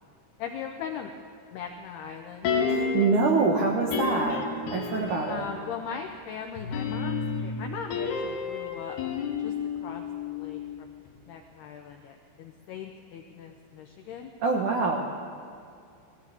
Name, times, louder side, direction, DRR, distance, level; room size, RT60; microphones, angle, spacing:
voice 1, 0.4-1.1 1.5-2.5 5.3-9.0 9.4-9.5 9.8-11.0 11.3-14.3, left 7 dB, 80° left, 3 dB, 2.3 m, -39 dB
sound 1, 2.4-3.3 3.9-5.5 6.6-10.8 11.1-11.2, left 5 dB, 60° left, 3.4 m, -30 dB
voice 2, 2.7-4.4 4.7-5.4 14.4-15.0, right 4 dB, 75° right, 1 dB, 1.8 m, -25 dB
21.0 x 15.5 x 8.4 m, 2.4 s
omnidirectional pair, 5.8 m